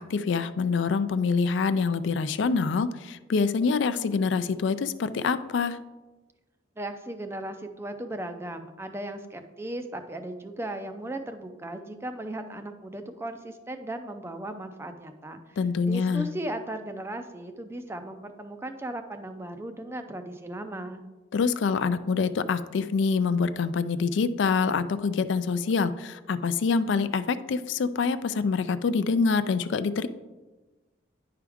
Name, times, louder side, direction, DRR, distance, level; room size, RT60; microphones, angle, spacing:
voice 1, 0.0-5.8 15.6-16.3 21.3-30.1, left 5 dB, 70° left, 13 dB, 0.4 m, -26 dB
voice 2, 6.8-15.6 15.9-21.0, right 1 dB, 15° right, 7 dB, 0.4 m, -37 dB
9.8 x 4.8 x 3.5 m, 1.2 s
head